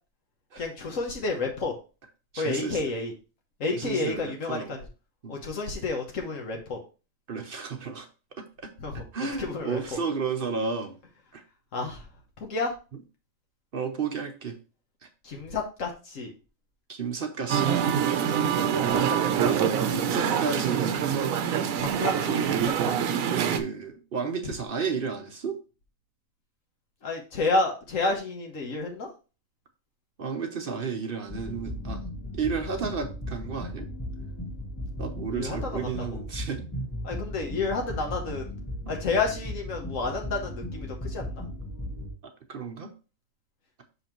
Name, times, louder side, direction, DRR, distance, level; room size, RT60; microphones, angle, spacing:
voice 1, 0.6-1.7 2.4-3.1 3.6-4.8 5.3-6.8 8.8-9.1 9.4-10.0 11.7-12.0 12.4-12.7 15.2-16.3 18.6-19.5 21.8-23.0 24.4-24.5 27.0-29.1 35.3-36.2 37.0-38.5 38.9-41.4, left 3 dB, 75° left, 1 dB, 1.4 m, -30 dB
voice 2, 2.3-2.8 3.7-4.8 5.2-5.4 7.3-8.1 8.4-8.7 9.1-11.0 11.3-11.4 13.7-14.6 16.9-17.9 19.9-21.3 23.2-25.6 30.2-32.0 32.3-33.9 35.0-36.6 38.9-39.0 42.5-42.9, right 5 dB, 50° right, 6 dB, 0.8 m, -32 dB
Musical instrument, 17.5-23.6, right 8 dB, 90° right, 1.1 m, -25 dB
sound 1, 31.3-42.1, equal, 5° left, 1.4 m, -36 dB
5.7 x 5.5 x 3.0 m, 0.34 s
omnidirectional pair, 1.4 m